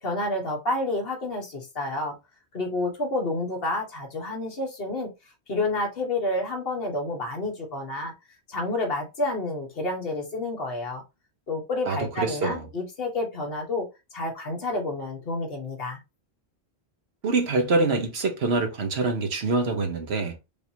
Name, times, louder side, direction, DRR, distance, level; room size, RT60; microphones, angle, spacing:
voice 1, 0.0-2.1 2.5-5.1 5.5-8.1 8.5-11.0 11.5-13.9 14.1-16.0, left 2 dB, 60° left, 1.5 m, -29 dB
voice 2, 11.8-12.7 17.2-20.4, right 3 dB, 75° right, 1.2 m, -25 dB
5.1 x 2.7 x 2.8 m
omnidirectional pair, 1.1 m